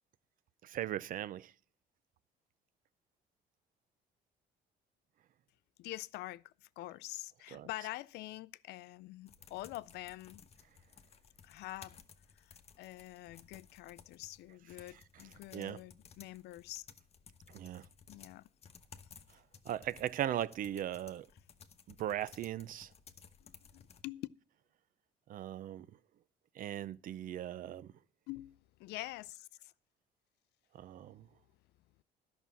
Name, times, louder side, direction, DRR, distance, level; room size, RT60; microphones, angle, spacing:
voice 1, 0.6-1.5 7.5-7.7 15.5-15.8 17.5-17.8 19.7-21.3 22.0-22.9 25.3-25.9 26.6-27.9 30.8-31.3, right 11 dB, 55° right, 0.5 m, -38 dB
voice 2, 5.8-10.4 11.4-11.9 12.4-12.5 12.8-16.9 18.1-18.5 23.4-24.3 28.3-29.7, left 17 dB, 80° left, 0.4 m, -46 dB
sound 1, 9.3-24.0, left 6 dB, 40° left, 1.0 m, -58 dB
11.0 x 6.1 x 6.9 m
cardioid pair, 110°, 17 cm